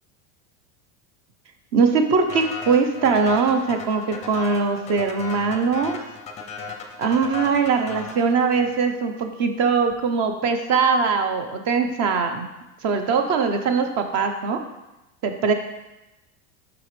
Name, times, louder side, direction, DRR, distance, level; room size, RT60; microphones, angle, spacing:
voice 1, 1.7-5.9 7.0-12.5 12.8-14.6 15.2-15.5, right 5 dB, 40° right, 6 dB, 0.9 m, -21 dB
sound 1, 2.3-9.0, left 5 dB, 15° left, 0.6 m, -36 dB
7.6 x 6.1 x 3.3 m, 0.98 s
supercardioid pair, 140°, 43 cm